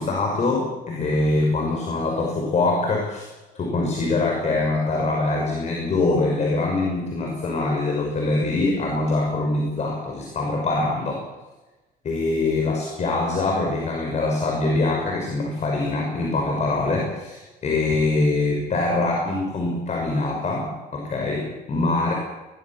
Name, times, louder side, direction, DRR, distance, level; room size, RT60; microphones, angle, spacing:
voice 1, 0.0-3.3 3.5-11.3 12.0-22.1, left 2 dB, 45° left, 1 dB, 5.8 m, -23 dB
22.0 x 19.0 x 7.5 m, 1.1 s
cardioid pair, 110°, 17 cm